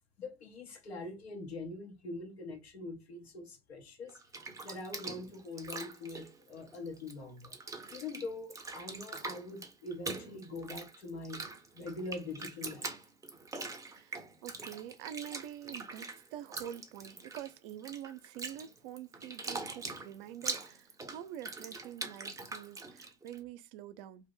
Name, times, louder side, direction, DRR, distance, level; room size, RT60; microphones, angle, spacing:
voice 1, 0.2-4.2 4.6-7.6 7.9-11.5 11.7-12.9, left 2 dB, 85° left, 0.9 m, -43 dB
Bathtub (filling or washing), 4.1-7.1 7.4-23.4, right 3 dB, 10° right, 0.5 m, -43 dB
voice 2, 13.9-24.3, right 11 dB, 60° right, 0.5 m, -46 dB
2.5 x 2.2 x 3.5 m
hypercardioid pair, 80°, 31 cm